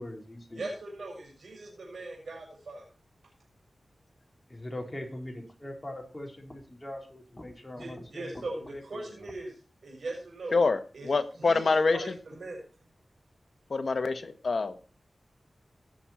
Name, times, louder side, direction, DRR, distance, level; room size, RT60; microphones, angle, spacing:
voice 1, 0.0-0.7 4.5-9.3, left 1 dB, 25° left, 2 dB, 3.8 m, -42 dB
voice 2, 0.5-2.8 7.7-9.5 9.8-10.6 10.9-11.1 11.4-11.6 11.9-12.6, right 2 dB, 75° right, -1 dB, 5.6 m, -39 dB
voice 3, 10.5-12.2 13.7-14.7, left 4 dB, 65° left, 9 dB, 1.3 m, -26 dB
17.5 x 6.4 x 4.3 m, 0.37 s
wide cardioid pair, 65°, 0 cm